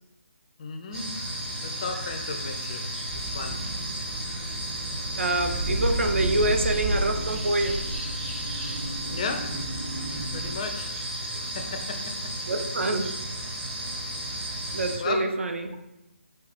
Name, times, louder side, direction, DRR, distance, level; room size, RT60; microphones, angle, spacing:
voice 1, 0.6-1.1 1.6-2.9 3.1-3.5 9.1-9.5 10.3-10.9 11.4-12.0 14.2-14.3 15.0-15.2, left 4 dB, 30° left, 4 dB, 0.4 m, -34 dB
sound 1, 0.9-15.0, right 1 dB, 10° right, 0.8 m, -34 dB
sound 2, 3.1-10.6, right 2 dB, 35° right, 1.0 m, -33 dB
voice 2, 5.2-7.8 12.5-13.1 14.7-15.8, right 2 dB, 65° right, 5 dB, 0.5 m, -26 dB
4.7 x 2.2 x 2.5 m, 0.92 s
figure-of-eight pair, 145°, 7 cm